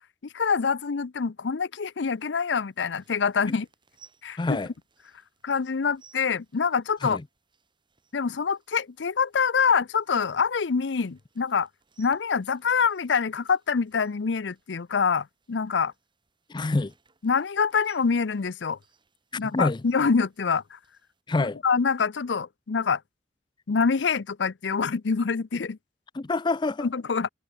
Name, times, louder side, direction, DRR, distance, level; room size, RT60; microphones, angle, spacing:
voice 1, 0.3-3.7 4.2-4.6 5.4-7.2 8.1-11.7 12.0-15.9 17.2-18.8 19.4-20.8 21.6-23.0 23.7-25.8 26.8-27.3, left 5 dB, 75° left, 0.6 m, -25 dB
sound 1, 1.8-21.2, right 6 dB, 25° right, 7.5 m, -64 dB
voice 2, 4.4-4.7 7.0-7.2 16.5-16.9 19.4-19.8 21.3-21.6 26.1-26.9, left 2 dB, 25° left, 0.5 m, -26 dB
open air
head